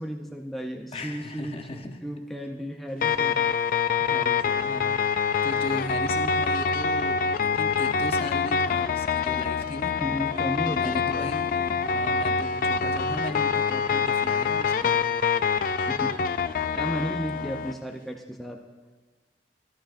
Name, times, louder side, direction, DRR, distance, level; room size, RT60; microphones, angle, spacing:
voice 1, 0.0-3.5 10.0-11.3 15.9-16.2 16.7-18.6, equal, ahead, 0 dB, 0.6 m, -34 dB
voice 2, 0.9-2.0 2.4-2.5 4.0-4.9 5.4-9.9 10.7-15.0 17.3-17.7, left 1 dB, 35° left, 5 dB, 0.8 m, -37 dB
sound 1, 3.0-17.7, left 6 dB, 50° left, 0.3 m, -25 dB
13.5 x 12.5 x 2.5 m, 1.3 s
head